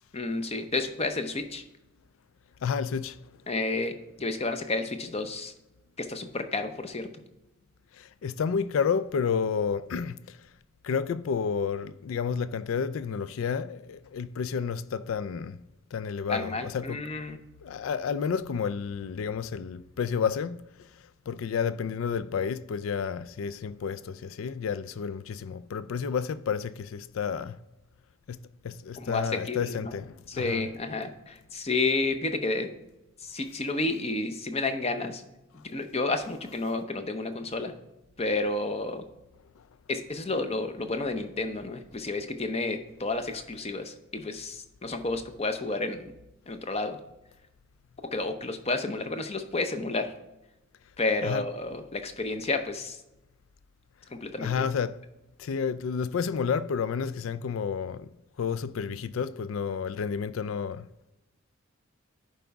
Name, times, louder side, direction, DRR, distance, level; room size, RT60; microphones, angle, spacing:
voice 1, 0.1-1.6 3.5-5.5 6.0-7.1 16.3-17.4 29.0-29.9 30.3-32.7 33.2-35.2 35.6-37.7 38.2-39.1 39.9-46.1 46.5-47.0 48.0-50.1 51.0-53.0 54.1-54.6, left 3 dB, 30° left, 0.6 m, -31 dB
voice 2, 2.6-3.3 7.9-10.5 10.8-15.6 15.9-17.0 17.6-27.6 28.3-28.4 28.6-30.7 35.6-35.7 39.6-39.7 51.2-51.4 54.4-55.0 55.4-60.9, left 6 dB, 70° left, 0.4 m, -31 dB
11.0 x 4.7 x 3.5 m
head